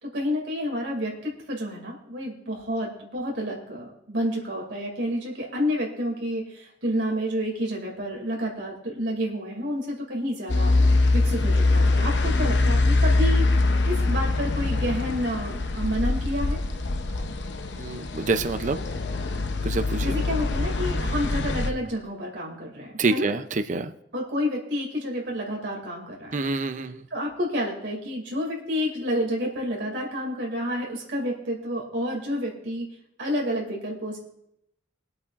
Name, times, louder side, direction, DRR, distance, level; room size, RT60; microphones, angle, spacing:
voice 1, 0.0-10.8 11.1-13.5 13.8-16.6 20.0-23.3 24.1-26.4 27.1-32.9 33.2-34.2, equal, 85° right, -1 dB, 2.5 m, -29 dB
sound 1, 10.5-21.7, left 2 dB, 70° left, 0.8 m, -23 dB
voice 2, 17.8-18.8 19.6-20.1 23.0-23.9 26.3-27.0, right 3 dB, 45° right, 9 dB, 0.6 m, -26 dB
23.0 x 8.5 x 2.5 m, 0.78 s
head